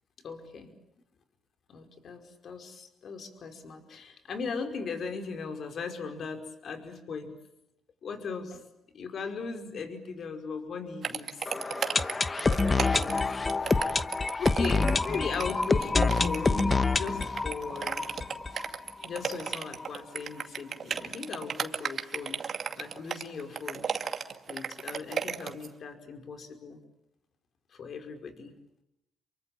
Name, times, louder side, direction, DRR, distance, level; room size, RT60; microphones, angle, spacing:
voice 1, 0.2-0.7 1.7-7.3 8.0-8.6 8.9-11.5 12.4-13.4 14.4-18.1 19.0-22.4 22.8-23.9 24.5-26.8 27.7-28.5, left 5 dB, 55° left, 6 dB, 5.2 m, -38 dB
sound 1, 11.0-25.7, right 6 dB, 50° right, 2.4 m, -34 dB
sound 2, 11.5-19.2 19.5-19.6 19.8-19.9 20.4-20.5, left 3 dB, 25° left, 1.2 m, -27 dB
28.5 x 24.0 x 8.7 m, 0.82 s
cardioid pair, 90°, 0 cm